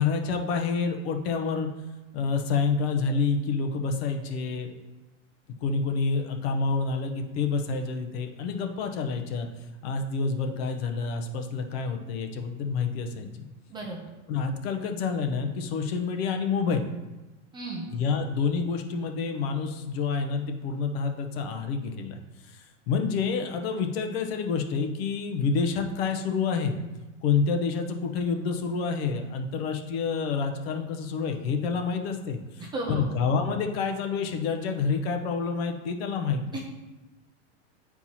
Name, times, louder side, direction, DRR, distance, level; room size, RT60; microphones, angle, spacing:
voice 1, 0.0-1.7 2.1-4.7 5.6-9.5 9.8-13.5 14.3-16.9 17.9-22.2 22.9-26.8 27.2-36.6, left 5 dB, 55° left, 5 dB, 0.9 m, -28 dB
voice 2, 17.5-17.9 32.6-33.1 36.5-36.6, right 2 dB, 15° right, -1 dB, 0.4 m, -34 dB
8.5 x 4.5 x 2.8 m, 1.1 s
supercardioid pair, 155°, 36 cm